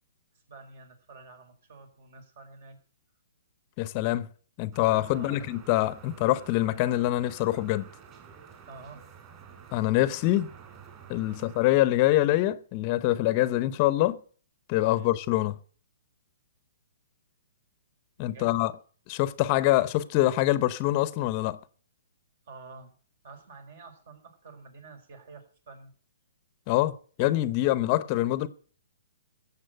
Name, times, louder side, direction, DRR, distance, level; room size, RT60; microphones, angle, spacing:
voice 1, 0.5-2.8 5.1-5.4 8.7-9.0 11.3-11.5 14.9-15.1 18.2-18.5 22.5-22.9 23.2-25.9 28.0-28.1, right 4 dB, 60° right, 4.5 m, -49 dB
voice 2, 3.8-4.3 4.6-7.9 9.7-10.5 11.1-14.2 14.7-15.6 18.2-18.7 19.1-21.6 26.7-28.5, left 15 dB, 30° left, 0.7 m, -25 dB
sound 1, 4.7-11.7, right 7 dB, 25° right, 3.4 m, -50 dB
15.0 x 7.3 x 7.9 m
hypercardioid pair, 155°, 0 cm